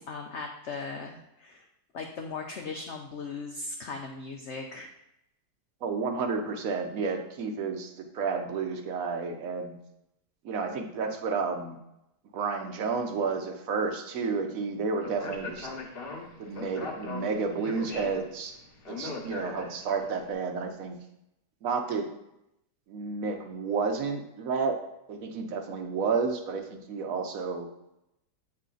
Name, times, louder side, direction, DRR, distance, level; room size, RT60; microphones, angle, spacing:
voice 1, 0.0-1.7 1.9-4.9, left 4 dB, 90° left, 2 dB, 0.6 m, -38 dB
voice 2, 5.8-9.8 10.4-11.8 12.3-15.7 16.4-18.6 18.9-21.0 21.6-22.1 22.9-24.8 25.1-27.7, right 5 dB, 65° right, 5 dB, 1.0 m, -31 dB
Speech, 15.0-20.1, left 3 dB, 45° left, 0.8 m, -39 dB
8.2 x 3.2 x 3.8 m, 0.85 s
omnidirectional pair, 1.9 m